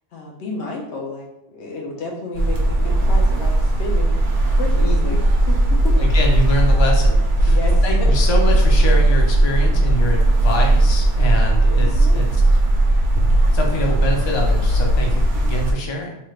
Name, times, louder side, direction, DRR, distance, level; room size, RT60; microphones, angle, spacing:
voice 1, 0.1-6.0 7.5-8.1 11.8-12.2, left 3 dB, 75° left, -1 dB, 1.0 m, -32 dB
sound 1, 2.3-15.7, right 1 dB, 55° right, 0.6 m, -16 dB
voice 2, 4.8-5.1 6.0-7.6 7.8-12.2 13.5-16.2, equal, 40° left, 0 dB, 0.4 m, -25 dB
3.2 x 2.8 x 2.3 m, 0.83 s
omnidirectional pair, 1.2 m